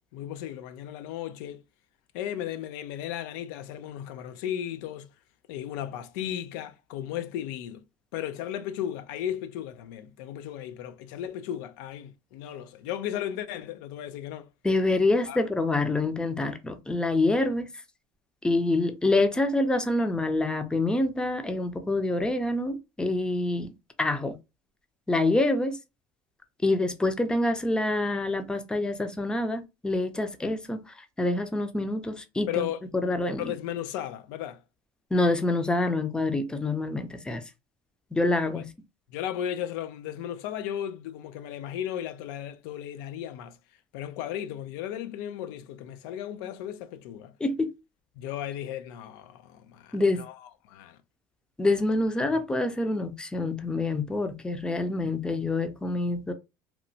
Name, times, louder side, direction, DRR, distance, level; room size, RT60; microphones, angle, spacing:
voice 1, 0.0-1.6 2.1-5.1 5.5-7.8 8.1-14.5 15.3-15.4 32.5-32.8 33.4-34.6 39.1-43.6 43.9-47.3 48.2-50.3 50.6-51.0, left 10 dB, 90° left, 0.4 m, -35 dB
voice 2, 14.6-17.7 18.4-23.7 24.0-24.4 25.1-25.8 26.6-32.6 33.0-33.4 35.1-37.4 38.1-38.7 47.4-47.7 49.9-50.2 51.6-56.3, left 2 dB, 10° left, 0.4 m, -26 dB
2.9 x 2.1 x 2.6 m
supercardioid pair, 115°, 10 cm